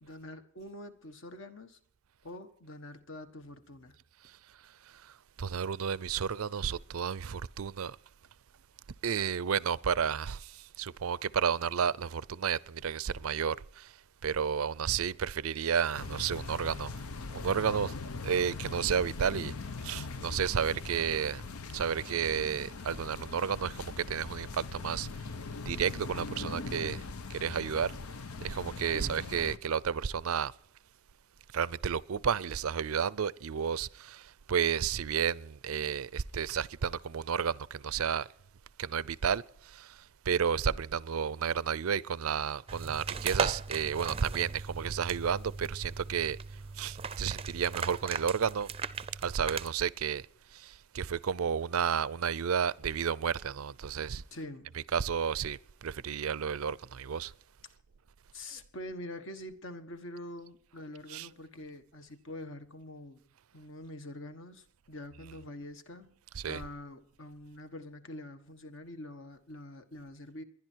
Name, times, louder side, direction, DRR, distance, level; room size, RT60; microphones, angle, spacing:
voice 1, 0.0-1.8 2.2-4.0 28.9-29.2 54.3-54.7 58.3-63.2 63.5-66.1 66.5-70.4, left 1 dB, 60° left, 1.4 m, -45 dB
voice 2, 5.4-8.0 9.0-10.5 10.8-13.9 14.2-16.9 17.3-17.9 18.2-19.5 19.8-21.4 21.7-25.1 25.7-27.0 27.3-27.9 28.4-30.5 31.5-34.2 34.5-38.3 38.8-39.4 39.7-39.9 40.3-46.4 46.8-48.7 49.2-50.2 50.6-54.2 54.9-57.3 61.1-61.3 66.4-66.6, right 7 dB, 75° right, 0.5 m, -31 dB
sound 1, 16.0-29.6, left 4 dB, 85° left, 0.7 m, -41 dB
sound 2, 42.7-49.7, right 5 dB, 25° right, 0.5 m, -38 dB
20.5 x 11.0 x 4.6 m
head